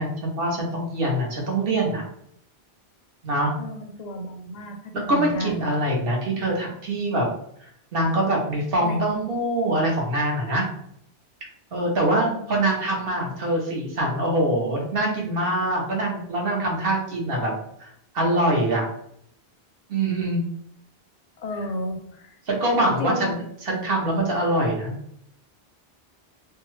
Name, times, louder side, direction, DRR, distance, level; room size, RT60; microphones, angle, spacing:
voice 1, 0.0-2.0 3.2-3.5 5.1-7.3 7.9-10.6 11.7-17.5 17.8-18.9 19.9-20.4 22.5-24.9, right 1 dB, 65° right, -2 dB, 1.1 m, -24 dB
voice 2, 3.6-5.7 8.8-9.0 21.4-22.4 22.8-23.4, left 1 dB, 55° left, 4 dB, 0.5 m, -32 dB
2.7 x 2.2 x 3.1 m, 0.70 s
omnidirectional pair, 1.1 m